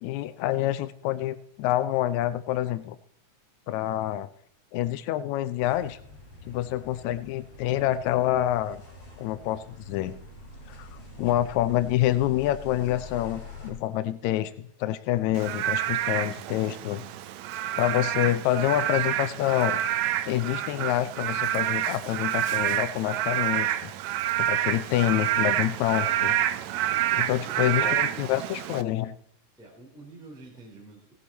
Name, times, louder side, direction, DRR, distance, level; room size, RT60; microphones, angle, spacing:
voice 1, 0.0-3.0 3.7-4.3 4.7-6.0 6.4-8.8 9.2-10.2 10.7-10.9 11.2-14.5 14.8-17.1 17.8-19.8 20.3-23.9 24.4-26.4 27.1-29.1, left 13 dB, 80° left, 13 dB, 1.7 m, -27 dB
sound 1, 5.6-13.7, left 1 dB, 35° left, 3.7 m, -45 dB
Frog / Rain, 15.4-28.8, right 12 dB, 80° right, 1.6 m, -28 dB
voice 2, 26.6-28.4 29.5-31.1, right 2 dB, ahead, -4 dB, 2.6 m, -48 dB
17.0 x 8.2 x 4.1 m, 0.66 s
omnidirectional pair, 3.8 m